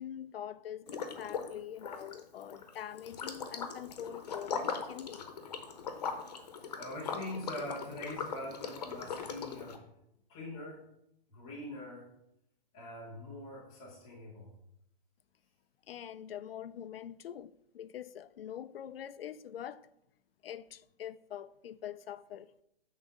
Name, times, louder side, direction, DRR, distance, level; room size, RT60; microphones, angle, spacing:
voice 1, 0.0-5.3 15.9-19.9 20.4-22.5, left 10 dB, 75° left, 0.5 m, -44 dB
Liquid, 0.9-1.5 1.8-9.8, left 6 dB, 45° left, 0.8 m, -40 dB
voice 2, 6.1-6.5 6.8-9.8 10.3-10.8 11.3-12.1 12.7-14.5, left 1 dB, 5° left, 0.4 m, -43 dB
6.5 x 3.9 x 5.9 m
hypercardioid pair, 175°, 29 cm